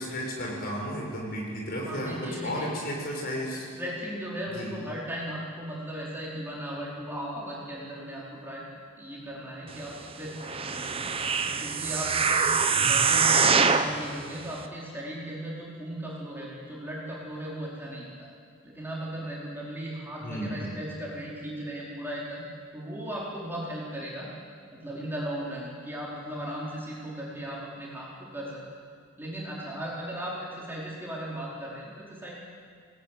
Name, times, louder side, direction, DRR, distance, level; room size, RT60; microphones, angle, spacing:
voice 1, 0.0-3.7 4.5-4.7 20.2-20.8, equal, 45° left, -2 dB, 6.2 m, -33 dB
voice 2, 1.8-2.7 3.8-8.7 9.0-10.9 11.2-11.3 11.6-12.5 12.8-18.3 18.6-22.4 22.7-24.3 24.7-28.6 29.2-32.4, right 1 dB, 10° right, -5 dB, 4.6 m, -37 dB
sound 1, 10.4-14.0 14.6-14.7, right 5 dB, 25° right, 1.1 m, -24 dB
24.0 x 19.0 x 9.3 m, 2.1 s
head